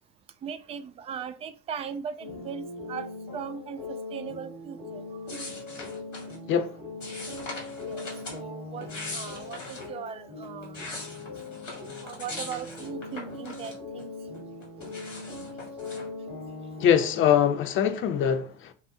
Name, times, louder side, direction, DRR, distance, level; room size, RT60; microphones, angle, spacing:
voice 1, 0.4-3.1 3.3-5.2 7.1-7.2 7.8-8.0 8.3-10.8 12.0-14.1, right 7 dB, 15° right, 0.4 m, -38 dB
sound 1, 2.2-17.2, left 3 dB, 55° right, 2.3 m, -40 dB
sound 2, 5.3-6.4 7.0-8.4 8.8-9.9 10.4-14.0 14.3-16.1, left 2 dB, 85° left, 1.9 m, -41 dB
voice 2, 16.8-18.7, left 9 dB, 35° left, 0.7 m, -23 dB
5.6 x 2.4 x 3.7 m
figure-of-eight pair, 75°, 36 cm